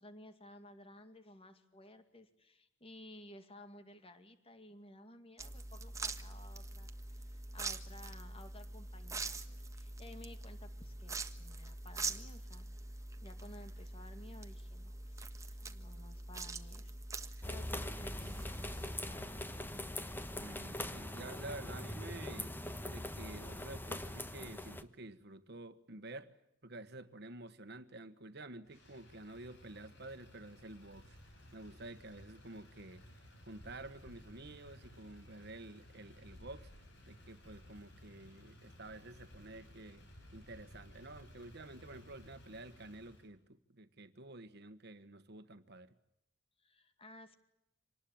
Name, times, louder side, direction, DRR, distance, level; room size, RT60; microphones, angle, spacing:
voice 1, 0.0-12.7 13.2-16.9 17.2-19.5 46.6-47.4, left 1 dB, 30° left, 8 dB, 2.3 m, -56 dB
sound 1, 5.4-18.9, right 3 dB, 15° right, 1.4 m, -44 dB
sound 2, 17.4-24.8, left 1 dB, 10° left, 1.3 m, -42 dB
voice 2, 20.4-22.6 22.8-26.3 26.6-31.2 31.5-33.0 33.5-36.7 37.1-40.1 40.3-45.9, right 2 dB, 60° right, 11 dB, 1.4 m, -50 dB
Motor vehicle (road), 28.6-43.3, left 1 dB, 65° left, 6.0 m, -57 dB
26.5 x 19.5 x 8.7 m, 0.84 s
head